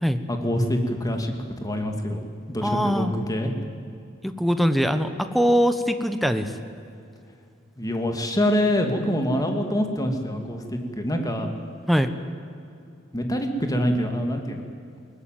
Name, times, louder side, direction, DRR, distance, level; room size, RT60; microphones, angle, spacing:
voice 1, 0.3-2.2 2.5-3.5 7.8-11.5 13.1-14.6, equal, 20° left, 4 dB, 2.5 m, -25 dB
voice 2, 2.6-3.1 4.2-6.5 11.9-12.1, equal, ahead, 9 dB, 1.2 m, -22 dB
21.5 x 19.5 x 9.2 m, 2.5 s
head